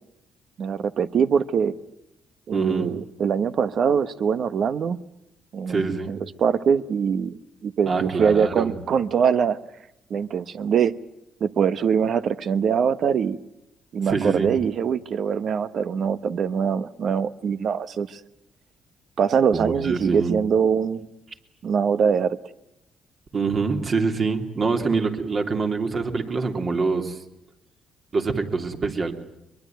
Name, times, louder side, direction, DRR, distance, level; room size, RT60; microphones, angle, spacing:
voice 1, 0.6-1.8 2.5-5.0 5.5-9.6 10.1-10.9 11.4-13.4 13.9-18.2 19.2-21.1 21.6-22.4, right 7 dB, 60° right, 1.1 m, -23 dB
voice 2, 2.5-2.9 5.7-6.1 7.8-8.7 14.0-14.5 19.5-20.4 23.3-27.2 28.1-29.1, right 4 dB, 45° right, 3.2 m, -25 dB
23.0 x 22.5 x 9.3 m
cardioid pair, 90°, 0 cm